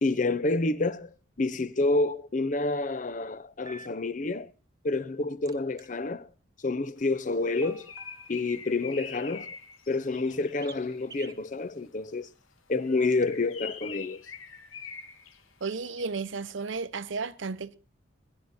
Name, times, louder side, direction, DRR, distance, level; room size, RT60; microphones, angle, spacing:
voice 1, 0.0-4.5 4.8-6.3 6.6-7.9 8.3-9.6 9.9-12.3 12.7-14.2, left 3 dB, 40° left, 0.6 m, -28 dB
sound 1, 3.7-3.9 5.5-5.9 7.6-8.4 10.6-10.8 11.1-11.4 13.1-13.3, right 4 dB, 20° right, 0.6 m, -48 dB
Bird, 7.1-11.2 12.8-16.3, left 6 dB, 90° left, 1.4 m, -45 dB
voice 2, 15.6-17.8, right 4 dB, 70° right, 0.8 m, -33 dB
21.0 x 11.0 x 4.1 m
head